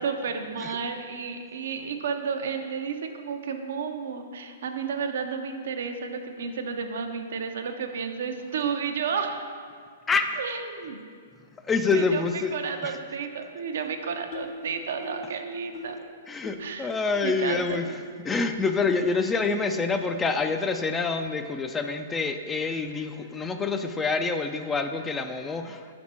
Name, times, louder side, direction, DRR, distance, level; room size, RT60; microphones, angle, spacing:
voice 1, 0.0-9.4 10.4-11.0 11.9-16.1 16.6-16.9 17.2-17.9, right 6 dB, 70° right, 5 dB, 0.5 m, -32 dB
voice 2, 10.1-10.4 11.6-12.6 12.8-13.0 16.3-17.9 18.2-25.9, left 4 dB, 15° left, 7 dB, 0.3 m, -27 dB
sound 1, 14.3-14.6 15.0-15.3 15.7-16.0 16.4-16.7 17.1-17.2 17.9-18.0 18.6-18.7 19.4-19.5 20.1-20.3, left 4 dB, 55° left, 0.8 m, -40 dB
5.8 x 4.3 x 4.3 m, 2.1 s
hypercardioid pair, 120°, 0 cm